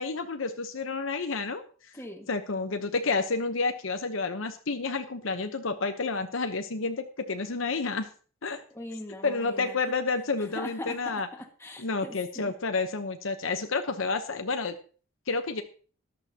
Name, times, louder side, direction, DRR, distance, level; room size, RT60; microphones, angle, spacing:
voice 1, 0.0-1.6 2.3-8.1 8.4-8.6 9.2-11.3 11.8-14.8 15.3-15.6, left 4 dB, 70° left, 7 dB, 0.9 m, -30 dB
voice 2, 1.9-2.3 8.7-9.8 10.5-12.5, left 1 dB, 15° left, 2 dB, 1.8 m, -41 dB
14.0 x 11.5 x 2.9 m, 0.39 s
head